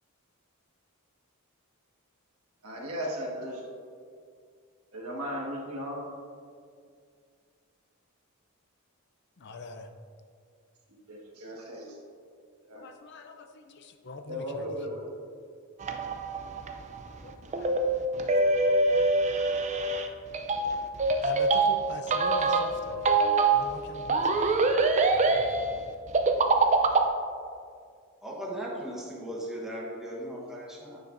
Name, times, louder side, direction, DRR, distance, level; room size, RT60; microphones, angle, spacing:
voice 1, 2.6-3.7 4.9-6.0 11.1-12.0 12.6-12.9 14.3-15.1 15.9-16.0, equal, 85° right, -2 dB, 1.5 m, -36 dB
voice 2, 9.4-9.9 12.7-14.7 17.2-18.5 19.0-19.1 21.2-23.1 23.5-24.6 24.9-25.6, left 3 dB, 50° left, 6 dB, 0.5 m, -44 dB
sound 1, 15.8-27.1, right 3 dB, 30° right, 0.4 m, -25 dB
voice 3, 28.2-31.0, right 1 dB, ahead, -4 dB, 1.1 m, -37 dB
9.8 x 6.1 x 2.6 m, 2.2 s
head